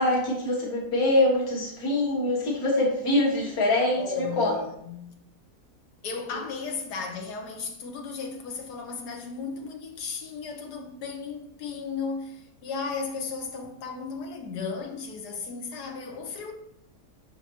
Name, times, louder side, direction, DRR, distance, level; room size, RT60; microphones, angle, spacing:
voice 1, 0.0-4.6, left 1 dB, 65° left, 2.0 m, -24 dB
voice 2, 3.9-5.1 6.0-16.5, left 5 dB, 85° left, 1.6 m, -35 dB
6.8 x 6.0 x 2.9 m
omnidirectional pair, 1.7 m